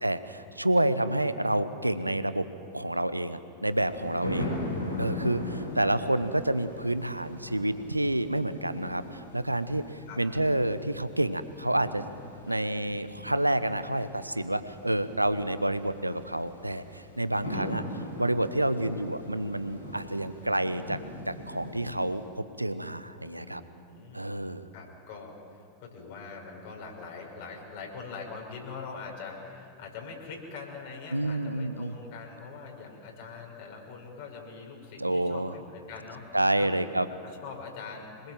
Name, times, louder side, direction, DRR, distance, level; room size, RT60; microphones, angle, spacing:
voice 1, 0.0-2.5 2.7-4.5 5.0-12.0 12.4-17.8 18.2-21.0 21.3-23.6 24.1-24.7 31.1-31.9 35.0-35.5 36.3-37.1, right 1 dB, 85° right, 13 dB, 1.0 m, -29 dB
sound 1, 3.7-22.2, left 1 dB, 90° left, 6.4 m, -40 dB
voice 2, 23.3-24.5 24.7-36.3 36.6-36.8 37.2-38.3, left 5 dB, 50° left, 0 dB, 5.9 m, -43 dB
26.0 x 20.5 x 7.8 m, 2.4 s
figure-of-eight pair, 90°, 0 cm